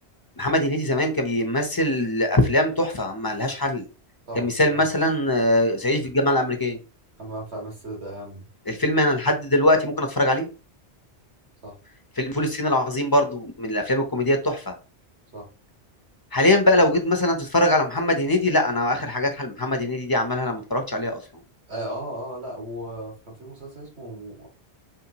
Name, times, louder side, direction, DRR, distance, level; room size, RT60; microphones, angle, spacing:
voice 1, 0.4-3.9 4.4-6.8 8.7-10.5 12.2-14.7 16.3-21.2, left 1 dB, 25° left, 4 dB, 0.6 m, -22 dB
voice 2, 4.3-4.9 7.2-8.5 11.6-11.7 15.3-15.5 21.7-24.5, right 1 dB, 75° right, -1 dB, 2.3 m, -36 dB
5.7 x 3.2 x 2.9 m, 0.33 s
omnidirectional pair, 1.1 m